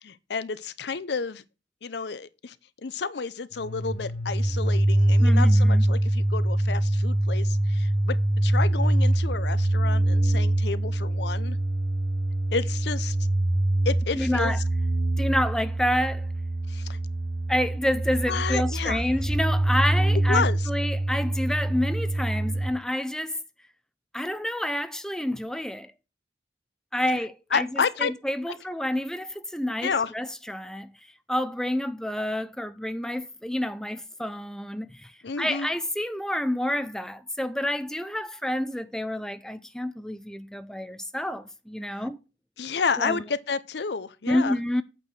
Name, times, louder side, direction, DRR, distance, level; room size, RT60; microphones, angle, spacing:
voice 1, 0.0-1.4 1.8-2.6 2.8-8.2 8.4-11.6 12.5-13.2 13.9-14.6 16.7-17.0 18.3-19.0 20.3-20.6 27.5-28.1 29.8-30.1 35.2-35.7 41.9-42.0 42.6-44.6, left 5 dB, 65° left, 0.6 m, -30 dB
sound 1, 3.5-22.7, right 1 dB, 85° right, 2.4 m, -24 dB
voice 2, 5.2-5.8 14.1-14.6 15.2-16.3 17.5-23.4 24.1-25.9 26.9-42.2 43.0-43.2 44.3-44.8, left 1 dB, 5° left, 0.4 m, -29 dB
8.6 x 4.7 x 6.1 m
head